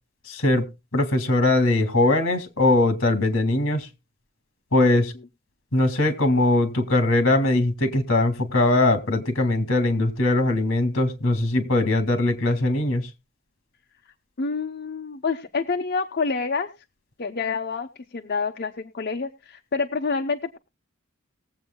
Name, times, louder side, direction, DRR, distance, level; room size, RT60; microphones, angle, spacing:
voice 1, 0.3-0.6 0.9-3.9 4.7-5.1 5.7-13.0, left 2 dB, 65° left, 8 dB, 2.1 m, -21 dB
voice 2, 14.4-16.7 17.2-17.9 18.1-20.6, left 4 dB, 45° left, 4 dB, 0.7 m, -27 dB
20.5 x 7.9 x 2.2 m, 0.27 s
head